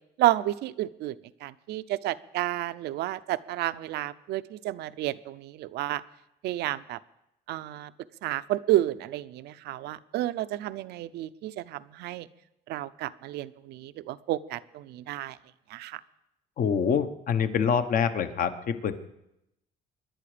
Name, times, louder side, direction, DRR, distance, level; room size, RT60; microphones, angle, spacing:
voice 1, 0.2-1.2 1.4-6.0 6.4-7.0 7.5-7.9 8.2-12.3 12.7-15.4 15.7-16.0, right 15 dB, 80° right, 15 dB, 0.6 m, -31 dB
voice 2, 16.6-19.1, left 7 dB, 55° left, 10 dB, 1.1 m, -26 dB
24.5 x 10.5 x 5.1 m, 0.85 s
cardioid pair, 110°, 17 cm